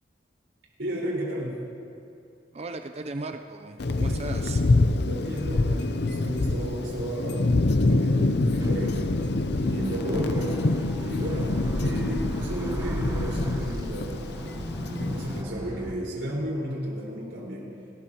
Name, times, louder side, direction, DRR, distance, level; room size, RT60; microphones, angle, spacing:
voice 1, 0.8-1.5 5.1-9.1 9.5-10.5 11.0-14.3 14.9-17.7, equal, 90° right, -4 dB, 4.8 m, -33 dB
voice 2, 2.5-4.6, right 2 dB, 35° right, 6 dB, 0.6 m, -36 dB
Thunder, 3.8-15.4, left 2 dB, 65° left, 0.7 m, -26 dB
sound 1, 8.6-15.9, equal, 20° right, 1.1 m, -35 dB
30.0 x 13.5 x 3.0 m, 2.5 s
head